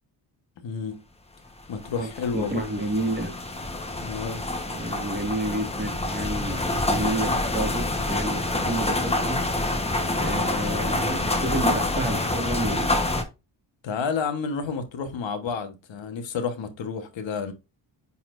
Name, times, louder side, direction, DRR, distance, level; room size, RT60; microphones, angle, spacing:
voice 1, 0.6-1.0 1.7-2.7 4.0-4.4 13.8-17.5, left 5 dB, 75° left, 1.3 m, -30 dB
sound 1, 1.8-13.2, left 2 dB, 15° left, 1.0 m, -27 dB
voice 2, 2.0-3.3 4.6-9.4 10.1-13.2, right 1 dB, 20° right, 1.7 m, -30 dB
9.3 x 4.2 x 2.5 m
cardioid pair, 115°, 46 cm